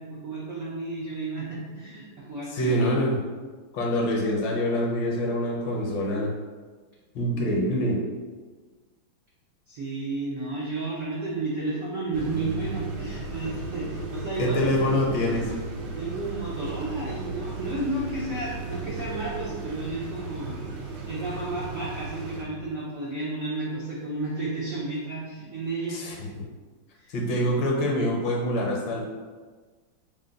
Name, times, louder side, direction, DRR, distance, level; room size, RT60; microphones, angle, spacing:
voice 1, 0.0-2.8 9.7-15.0 16.0-26.0 26.9-27.5, right 2 dB, 85° right, -6 dB, 0.7 m, -32 dB
voice 2, 2.5-3.2 3.7-6.3 7.1-8.0 14.4-15.5 25.9-26.4 27.1-29.0, equal, 70° left, -1 dB, 1.3 m, -25 dB
sound 1, 12.1-22.4, right 3 dB, 70° right, 1.1 m, -35 dB
3.8 x 2.2 x 3.8 m, 1.4 s
omnidirectional pair, 2.3 m